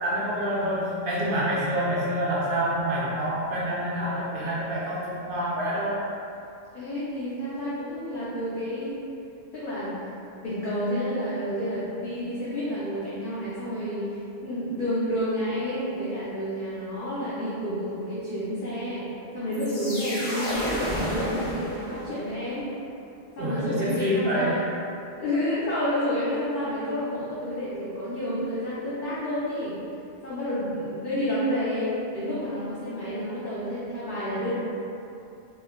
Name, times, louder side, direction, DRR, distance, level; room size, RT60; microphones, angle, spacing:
voice 1, 0.0-6.0 23.4-24.6, equal, 50° right, -7 dB, 0.7 m, -27 dB
voice 2, 6.7-8.9 9.5-10.0 10.4-19.1 19.3-22.7 23.4-24.6 25.2-29.8 30.2-34.5, equal, 55° left, -11 dB, 0.7 m, -30 dB
sound 1, 19.5-22.3, equal, 70° left, 1.1 m, -31 dB
4.3 x 2.1 x 2.2 m, 2.7 s
omnidirectional pair, 1.3 m